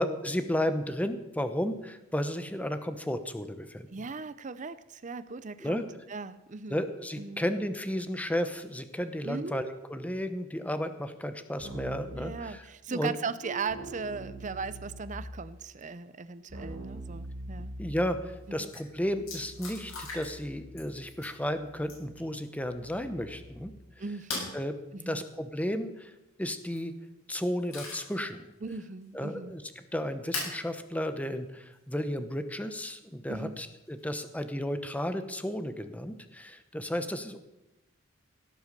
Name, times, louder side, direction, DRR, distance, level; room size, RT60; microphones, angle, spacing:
voice 1, 0.0-3.9 5.6-5.8 6.7-13.1 17.8-23.7 24.5-24.7 25.1-26.1 26.4-26.9 27.3-28.4 29.1-29.6 29.9-37.5, equal, 5° left, 9 dB, 0.9 m, -33 dB
voice 2, 3.9-6.8 7.2-7.4 9.2-9.6 12.1-17.7 18.5-18.7 24.0-24.5 24.9-25.2 28.6-29.5 33.3-33.6, right 4 dB, 35° right, 14 dB, 0.5 m, -38 dB
Keyboard (musical), 11.6-12.2 13.7-15.3 16.5-23.5, right 1 dB, 75° right, 3.7 m, -45 dB
Harp, 13.4-15.2 15.5-16.0 16.5-16.6, right 3 dB, 65° left, 2.3 m, -48 dB
sound 1, 18.3-18.4 18.6-18.8 19.3-20.5 20.8-21.3 21.8-22.2 24.3-24.6 26.5-26.9 27.3-28.2 28.7-28.8 30.3-30.6 31.7-31.8 33.9-34.3, left 3 dB, 85° left, 6.9 m, -39 dB
17.5 x 8.1 x 6.7 m, 0.96 s
head